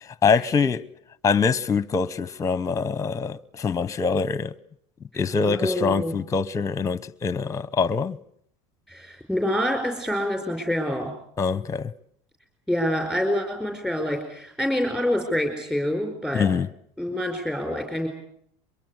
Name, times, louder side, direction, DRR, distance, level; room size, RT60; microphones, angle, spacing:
voice 1, 0.2-0.8 1.2-4.5 5.1-8.2 11.4-11.9 16.3-16.7, left 5 dB, 20° left, 0.9 m, -24 dB
voice 2, 5.1-6.2 8.9-11.1 12.7-16.5 17.0-18.1, equal, 5° right, 4.8 m, -26 dB
23.5 x 23.0 x 8.2 m
supercardioid pair, 115°, 16 cm